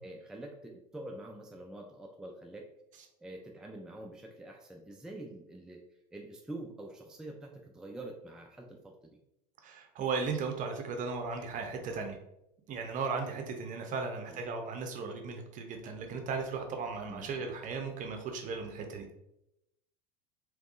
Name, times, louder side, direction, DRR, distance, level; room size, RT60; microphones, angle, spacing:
voice 1, 0.0-2.7 3.2-5.8 6.1-9.2 14.3-14.4 17.1-17.3, right 1 dB, 5° right, 0 dB, 0.4 m, -46 dB
voice 2, 9.6-12.2 12.7-19.2, right 4 dB, 40° right, 4 dB, 0.8 m, -36 dB
3.4 x 3.0 x 2.5 m, 0.82 s
hypercardioid pair, 85°, 20 cm